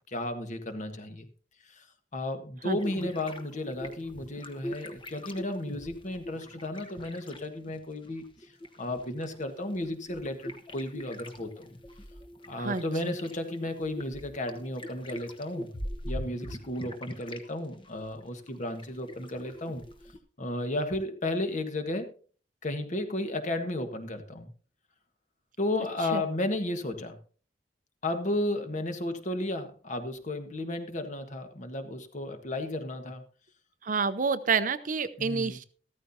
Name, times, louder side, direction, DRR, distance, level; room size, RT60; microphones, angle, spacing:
voice 1, 0.1-1.3 1.7-1.8 2.1-8.3 8.8-11.7 12.5-15.7 16.0-19.8 20.4-22.1 22.6-24.5 25.6-27.2 28.0-33.2 35.2-35.6, left 1 dB, 45° left, 7 dB, 1.5 m, -33 dB
voice 2, 2.6-3.1 12.6-13.2 26.1-26.2 33.8-35.6, right 5 dB, 50° right, 12 dB, 0.7 m, -29 dB
sound 1, 2.8-7.8 8.0-17.5 17.7-20.2, equal, 30° left, 1.2 m, -42 dB
14.5 x 13.5 x 2.8 m, 0.39 s
head